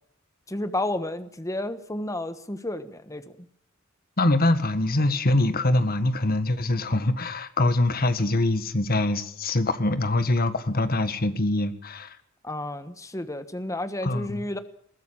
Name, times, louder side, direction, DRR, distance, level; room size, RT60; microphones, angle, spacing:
voice 1, 0.5-3.5 12.4-14.6, left 1 dB, 15° left, 11 dB, 1.3 m, -31 dB
voice 2, 4.2-12.2 14.0-14.4, left 2 dB, 50° left, 11 dB, 1.6 m, -24 dB
21.0 x 14.5 x 8.7 m, 0.67 s
head